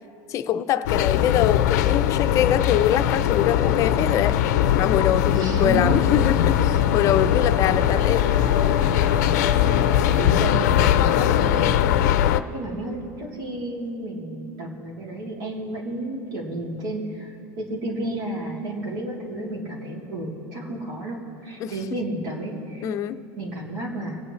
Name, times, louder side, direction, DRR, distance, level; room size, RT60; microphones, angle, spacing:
voice 1, 0.3-4.4 4.7-8.3 21.6-22.0 22.8-23.2, left 10 dB, 35° left, 10 dB, 0.5 m, -24 dB
sound 1, 0.9-12.4, left 11 dB, 85° left, 0.5 m, -20 dB
Wind instrument woodwind instrument, 4.9-13.4, right 4 dB, 15° right, 0.7 m, -39 dB
voice 2, 5.3-6.0 10.2-12.0 12.5-22.8 23.4-24.2, right 2 dB, 80° right, -4 dB, 3.2 m, -31 dB
25.0 x 8.4 x 3.2 m, 2.6 s
supercardioid pair, 150°, 9 cm